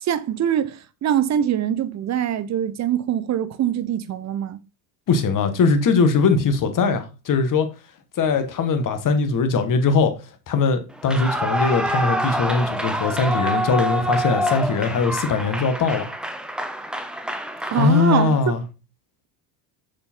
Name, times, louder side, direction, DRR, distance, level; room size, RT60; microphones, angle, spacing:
voice 1, 0.0-4.6 17.7-18.4, right 10 dB, 35° right, 0.8 m, -23 dB
voice 2, 5.1-7.7 8.2-10.1 10.5-16.1 17.8-18.6, left 4 dB, 40° left, 1.7 m, -20 dB
Clapping / Cheering / Applause, 11.0-18.4, right 1 dB, ahead, 0.8 m, -26 dB
6.7 x 5.1 x 4.5 m
supercardioid pair, 100°, 48 cm